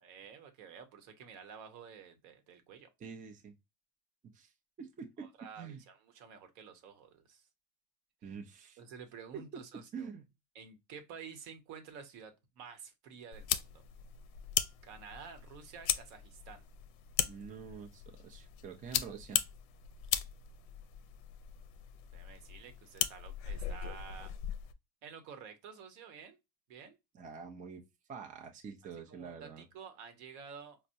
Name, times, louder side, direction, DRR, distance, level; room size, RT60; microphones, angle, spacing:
voice 1, 0.0-2.9 5.2-7.5 8.2-8.4 8.8-10.1 10.5-13.8 14.8-16.7 22.1-24.3 25.0-26.4 26.7-27.0 29.1-30.8, right 6 dB, 65° right, 1.0 m, -51 dB
voice 2, 3.0-3.5 4.3-4.5 4.8-5.8 8.2-8.8 9.3-9.6 9.9-10.3 17.3-19.4 27.1-27.8 28.1-29.7, right 6 dB, 25° right, 0.6 m, -46 dB
sound 1, 13.3-24.7, left 11 dB, 65° left, 0.5 m, -38 dB
4.3 x 2.1 x 2.6 m
supercardioid pair, 115°, 29 cm